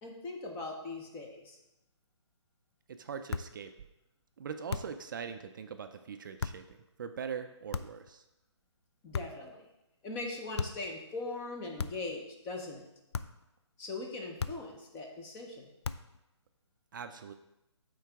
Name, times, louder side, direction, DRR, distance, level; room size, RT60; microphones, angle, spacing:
voice 1, 0.0-1.6 9.0-9.7 10.0-12.9 13.8-15.7, left 3 dB, 15° left, 1 dB, 0.7 m, -40 dB
voice 2, 2.9-3.7 4.4-8.2 16.9-17.3, right 6 dB, 45° right, 8 dB, 0.4 m, -42 dB
sound 1, 3.3-3.6 4.7-5.1 6.4-6.7 7.7-8.1 9.1-9.5 10.6-10.9 11.8-12.2 13.1-13.5 14.4-14.8 15.8-16.2, left 5 dB, 65° left, 0.4 m, -37 dB
9.3 x 3.9 x 3.5 m, 0.93 s
hypercardioid pair, 160°, 15 cm